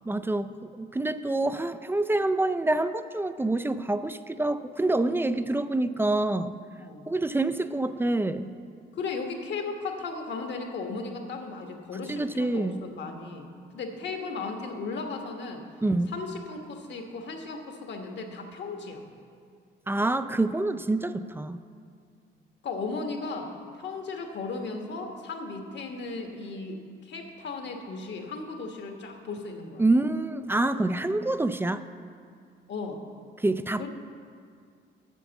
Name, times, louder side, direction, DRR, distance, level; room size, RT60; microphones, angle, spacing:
voice 1, 0.1-6.6 7.1-8.5 12.1-12.8 15.8-16.1 19.9-21.6 29.8-31.8 33.4-33.9, right 2 dB, 10° right, 12 dB, 0.3 m, -26 dB
voice 2, 6.8-7.1 8.9-15.6 16.1-19.1 22.6-29.8 32.7-33.0 33.8-33.9, left 4 dB, 65° left, 3 dB, 1.3 m, -36 dB
8.3 x 7.2 x 7.0 m, 2.2 s
cardioid pair, 90°, 20 cm